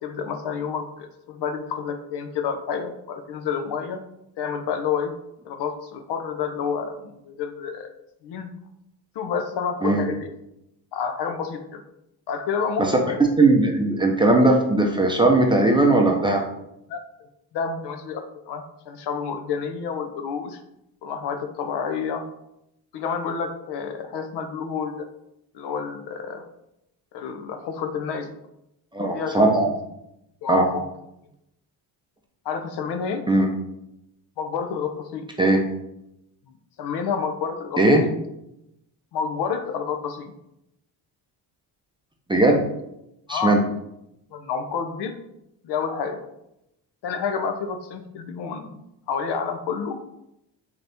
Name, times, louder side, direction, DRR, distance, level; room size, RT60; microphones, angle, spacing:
voice 1, 0.0-4.0 4.4-5.1 5.4-7.9 8.2-8.5 9.2-10.3 10.9-11.8 12.3-13.2 16.9-17.0 17.5-20.6 21.0-22.2 22.9-25.1 25.5-26.4 27.1-28.3 29.1-29.6 30.4-30.8 32.4-33.2 34.4-35.3 36.8-37.8 39.1-40.3 43.3-43.6 44.3-45.2 45.6-46.2 47.0-50.0, left 6 dB, 70° left, 7 dB, 0.6 m, -29 dB
voice 2, 13.4-16.4 28.9-29.7 30.5-30.6 33.3-33.5 35.4-35.6 37.8-38.1 42.3-42.6 43.3-43.6, right 2 dB, 10° right, 1 dB, 0.5 m, -18 dB
4.0 x 2.9 x 3.4 m, 0.83 s
cardioid pair, 120°, 43 cm